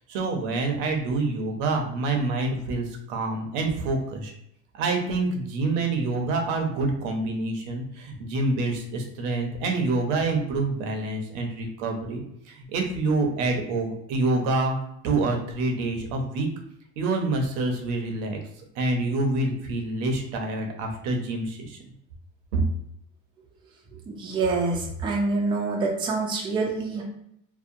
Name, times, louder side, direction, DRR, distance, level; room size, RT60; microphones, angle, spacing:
voice 1, 0.1-4.3 4.7-14.8 15.0-16.5 17.0-18.4 18.8-21.8 22.5-22.6, right 2 dB, 80° right, 3 dB, 0.7 m, -27 dB
voice 2, 24.1-27.0, right 3 dB, 15° right, -1 dB, 0.4 m, -26 dB
2.7 x 2.1 x 2.5 m, 0.74 s
cardioid pair, 145°, 29 cm